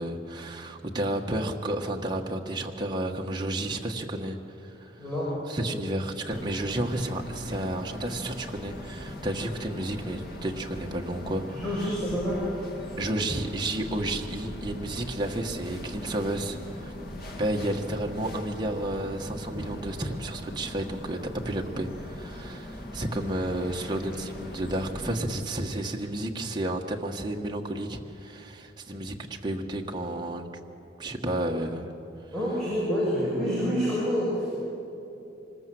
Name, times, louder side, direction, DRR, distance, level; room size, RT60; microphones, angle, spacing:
voice 1, 0.0-4.9 5.5-11.6 13.0-16.9 17.4-29.2 29.4-30.5 31.0-31.9, right 1 dB, 25° right, 1 dB, 1.5 m, -31 dB
voice 2, 5.0-5.3 11.5-12.4 32.3-34.6, equal, 5° left, -8 dB, 6.3 m, -27 dB
sound 1, 6.3-25.2, left 1 dB, 55° left, 2.4 m, -40 dB
25.5 x 20.0 x 7.8 m, 2.8 s
head